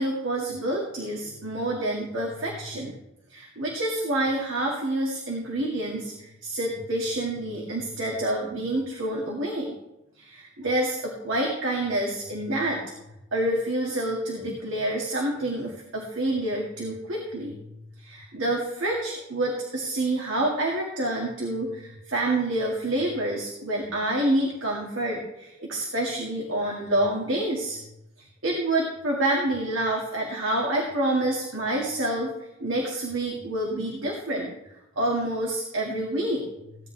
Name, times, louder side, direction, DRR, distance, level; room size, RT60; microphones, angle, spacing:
voice 1, 0.0-2.9 3.3-9.7 10.2-12.8 13.3-17.6 18.0-27.8 28.2-32.3 32.6-34.5 35.0-36.4, right 1 dB, 90° right, -2 dB, 2.3 m, -28 dB
17.0 x 10.0 x 3.5 m, 0.90 s
head